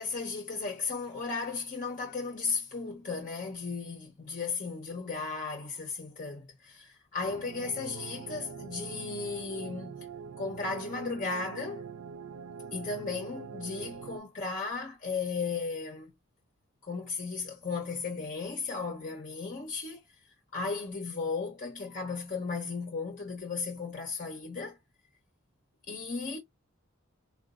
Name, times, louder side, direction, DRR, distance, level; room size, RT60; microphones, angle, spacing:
voice 1, 0.0-10.1 10.4-11.8 12.7-16.1 16.8-20.0 20.5-24.8 25.9-26.4, left 4 dB, 40° left, 0.6 m, -35 dB
sound 1, 7.2-14.2, right 5 dB, 70° right, 0.4 m, -43 dB
3.8 x 2.2 x 2.3 m
head